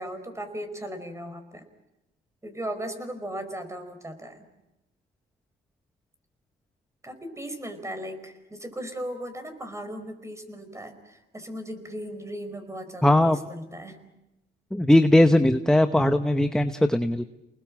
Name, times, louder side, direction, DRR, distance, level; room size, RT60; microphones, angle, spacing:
voice 1, 0.0-1.6 2.4-4.4 7.0-14.0, equal, 15° right, 8 dB, 4.9 m, -37 dB
voice 2, 13.0-13.4 14.7-17.2, left 1 dB, 5° left, 9 dB, 0.9 m, -19 dB
29.5 x 20.0 x 7.5 m, 0.94 s
cardioid pair, 90°, 20 cm